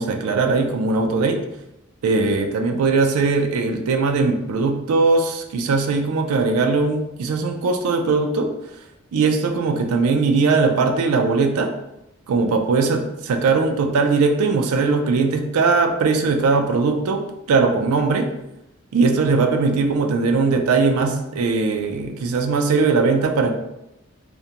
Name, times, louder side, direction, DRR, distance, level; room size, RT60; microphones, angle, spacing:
voice 1, 0.0-1.4 2.0-8.5 9.1-11.7 12.3-18.3 18.9-23.5, right 4 dB, 85° right, 5 dB, 0.4 m, -20 dB
2.5 x 2.1 x 2.8 m, 0.88 s
head